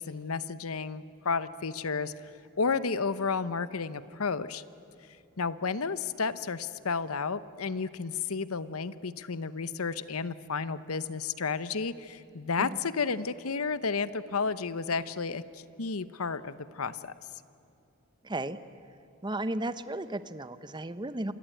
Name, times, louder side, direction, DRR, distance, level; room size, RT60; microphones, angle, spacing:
voice 1, 0.0-4.6 5.4-17.1, left 5 dB, 90° left, 15 dB, 0.9 m, -32 dB
voice 2, 18.2-18.6 19.2-21.3, right 1 dB, 20° right, 13 dB, 0.8 m, -34 dB
28.0 x 22.5 x 9.1 m, 2.7 s
head